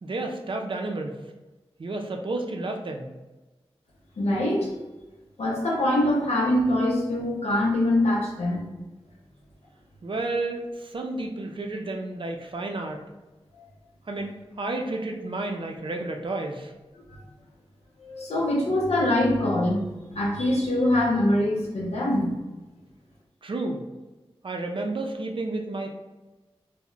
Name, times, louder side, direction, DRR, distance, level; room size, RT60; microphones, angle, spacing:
voice 1, 0.0-1.2 1.8-3.1 10.0-13.0 14.1-14.3 14.6-16.7 23.4-23.8 24.4-25.9, right 2 dB, 55° right, 2 dB, 0.4 m, -31 dB
voice 2, 4.2-4.7 5.4-8.7 17.1-17.2 18.0-19.9 20.1-22.4, left 1 dB, 80° left, -4 dB, 0.6 m, -23 dB
2.2 x 2.1 x 3.7 m, 1.1 s
cardioid pair, 50°, 11 cm